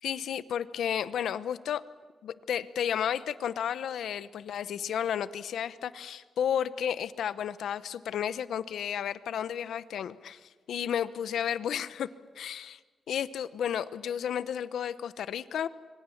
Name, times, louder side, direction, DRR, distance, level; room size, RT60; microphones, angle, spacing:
voice 1, 0.0-1.8 2.2-12.1 12.4-12.8 13.1-15.7, left 9 dB, 85° left, 15 dB, 0.9 m, -32 dB
26.0 x 24.0 x 7.2 m, 1.5 s
wide cardioid pair, 155°, 0 cm